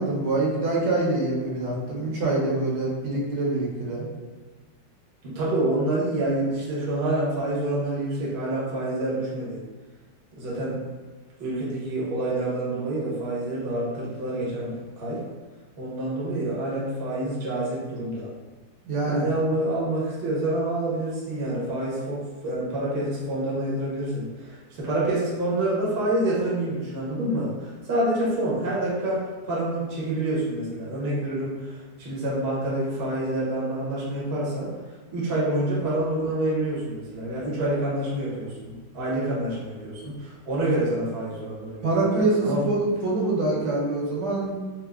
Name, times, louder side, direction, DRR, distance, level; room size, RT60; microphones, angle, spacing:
voice 1, 0.0-4.1 18.9-19.3 41.8-44.6, right 2 dB, 75° right, -4 dB, 1.4 m, -25 dB
voice 2, 5.2-9.6 10.3-10.8 11.4-15.2 15.8-18.3 19.0-34.7 35.1-42.0 42.4-42.6, right 1 dB, 50° right, -6 dB, 0.7 m, -27 dB
4.4 x 2.0 x 2.3 m, 1.3 s
omnidirectional pair, 2.2 m